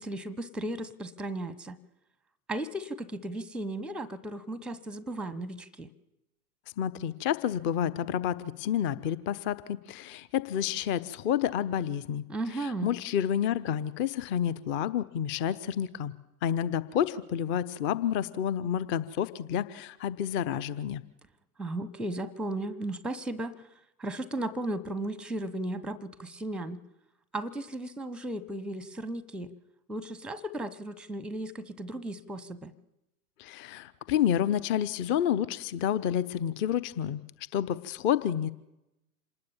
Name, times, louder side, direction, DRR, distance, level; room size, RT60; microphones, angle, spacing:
voice 1, 0.0-1.8 2.5-5.9 12.3-12.9 21.6-23.6 24.0-26.8 27.3-29.5 29.9-32.7, right 1 dB, ahead, 19 dB, 0.9 m, -35 dB
voice 2, 6.8-12.2 12.6-16.1 16.4-21.0 33.4-37.2 37.5-38.5, left 9 dB, 25° left, 17 dB, 0.9 m, -29 dB
26.5 x 19.5 x 7.3 m, 0.90 s
figure-of-eight pair, 100°, 46 cm